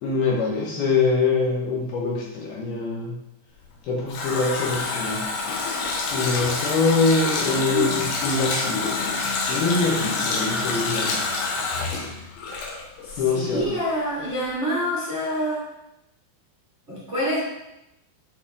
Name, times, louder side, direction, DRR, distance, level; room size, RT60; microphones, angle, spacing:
voice 1, 0.0-3.1 3.8-5.2 6.1-8.9 9.5-11.2 13.2-13.7, left 4 dB, 70° left, -3 dB, 2.6 m, -24 dB
Water tap faucet, 3.6-13.2 13.5-13.6, left 3 dB, 85° left, 3.8 m, -27 dB
voice 2, 7.4-8.1 13.0-15.6 16.9-17.4, equal, 50° right, -8 dB, 0.8 m, -27 dB
12.0 x 5.0 x 3.5 m, 0.88 s
omnidirectional pair, 5.5 m